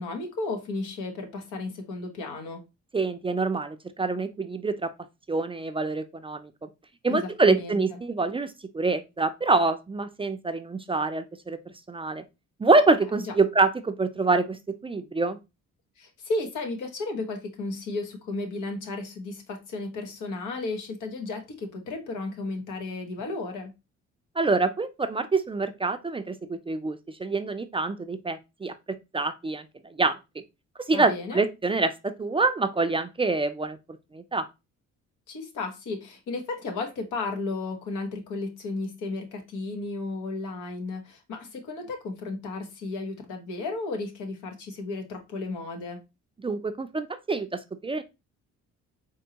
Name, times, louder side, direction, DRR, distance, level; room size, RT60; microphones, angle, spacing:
voice 1, 0.0-2.6 7.1-8.0 13.3-13.4 16.0-23.7 30.9-31.4 35.3-46.0, left 3 dB, 85° left, 1.1 m, -34 dB
voice 2, 2.9-4.9 5.3-6.7 7.0-11.6 11.9-12.2 12.6-15.4 24.4-30.2 30.8-33.8 34.1-34.4 46.4-48.0, right 3 dB, 20° right, 0.4 m, -26 dB
4.4 x 3.0 x 2.8 m
cardioid pair, 90°, 30 cm